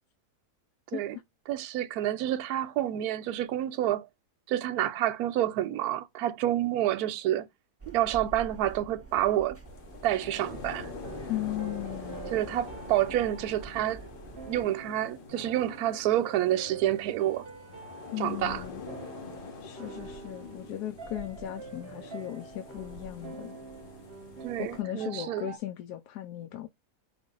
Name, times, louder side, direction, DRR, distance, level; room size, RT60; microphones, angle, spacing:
voice 1, 0.9-1.2 11.3-12.3 18.1-18.8 19.6-23.6 24.6-26.7, left 12 dB, 80° left, 1.2 m, -37 dB
voice 2, 1.5-4.1 4.5-7.5 7.9-9.6 10.0-10.9 12.3-14.0 14.5-17.4 18.2-18.6 24.4-25.5, right 12 dB, 75° right, 1.1 m, -28 dB
sound 1, 7.8-14.6, right 4 dB, 10° right, 1.0 m, -47 dB
sound 2, 9.6-24.8, left 5 dB, 50° left, 0.7 m, -46 dB
sound 3, 10.2-25.6, right 5 dB, 45° right, 0.9 m, -46 dB
5.1 x 2.5 x 3.8 m
omnidirectional pair, 1.7 m